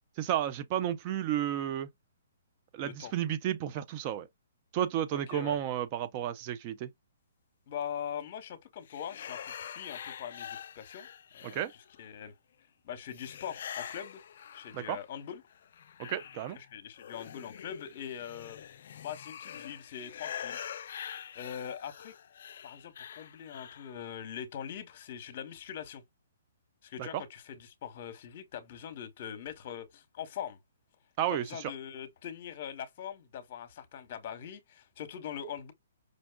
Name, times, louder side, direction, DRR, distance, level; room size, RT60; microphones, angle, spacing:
voice 1, 0.2-1.9 2.7-4.3 4.7-6.9 11.4-11.7 14.7-15.0 16.0-16.6 27.0-27.2 31.2-31.7, right 11 dB, 30° right, 0.4 m, -32 dB
voice 2, 2.8-3.1 5.1-5.6 7.7-11.1 11.3-11.6 12.0-12.3 12.8-14.2 14.5-15.4 16.6-18.6 19.0-20.6 21.3-22.1 22.6-26.0 26.8-30.6 31.3-35.7, left 9 dB, 45° left, 0.9 m, -42 dB
sound 1, 8.9-12.0 13.1-15.1 15.5-24.0, left 9 dB, 60° left, 0.4 m, -45 dB
5.2 x 2.2 x 2.2 m
hypercardioid pair, 155°, 0 cm